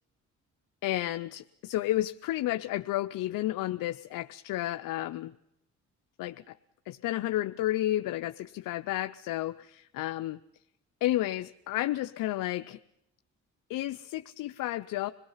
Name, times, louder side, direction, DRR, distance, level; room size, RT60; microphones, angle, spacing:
voice 1, 0.8-5.3 6.2-6.5 6.9-10.4 11.0-12.8 13.7-15.1, left 15 dB, 80° left, 9 dB, 0.6 m, -31 dB
26.0 x 18.5 x 5.6 m, 0.84 s
cardioid pair, 75°, 32 cm